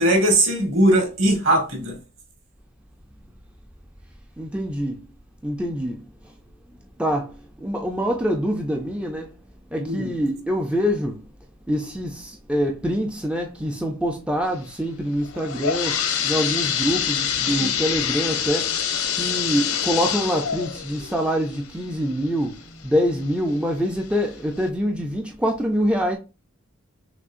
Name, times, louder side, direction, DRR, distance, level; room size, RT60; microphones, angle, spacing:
voice 1, 0.0-2.0 9.8-10.1 17.4-17.7, right 1 dB, 60° right, 2.1 m, -20 dB
voice 2, 4.4-5.0 5.4-6.1 7.0-7.3 7.6-9.3 9.7-11.2 11.7-18.8 19.1-26.2, equal, 5° right, 0.4 m, -25 dB
sound 1, 15.2-22.8 23.3-23.4 24.1-24.2 24.6-24.7, left 8 dB, 80° left, 0.8 m, -26 dB
6.1 x 3.1 x 2.5 m
head